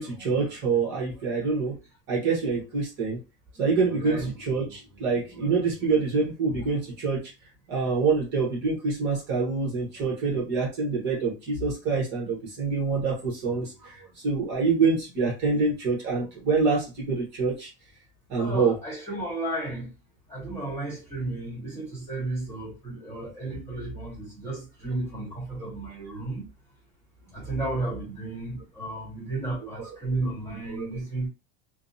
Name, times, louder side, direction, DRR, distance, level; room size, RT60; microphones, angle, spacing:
voice 1, 0.0-1.7 2.1-3.2 3.6-7.2 7.7-13.9 14.2-17.7 18.3-18.7 29.8-29.9 30.7-30.9, right 4 dB, 35° right, 1.0 m, -26 dB
voice 2, 18.3-19.9 20.3-26.5 27.3-31.3, right 2 dB, 10° left, 1.1 m, -33 dB
2.5 x 2.0 x 2.6 m
supercardioid pair, 160°, 29 cm